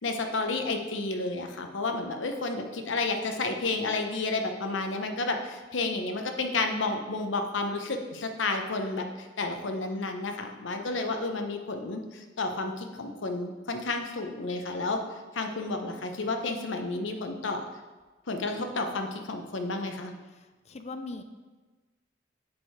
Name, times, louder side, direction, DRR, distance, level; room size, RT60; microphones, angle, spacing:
voice 1, 0.0-15.0 15.3-17.6 18.3-20.1, left 3 dB, 80° left, 5 dB, 0.8 m, -31 dB
voice 2, 20.3-21.2, left 3 dB, 35° left, 8 dB, 0.4 m, -40 dB
7.3 x 4.7 x 4.5 m, 1.3 s
head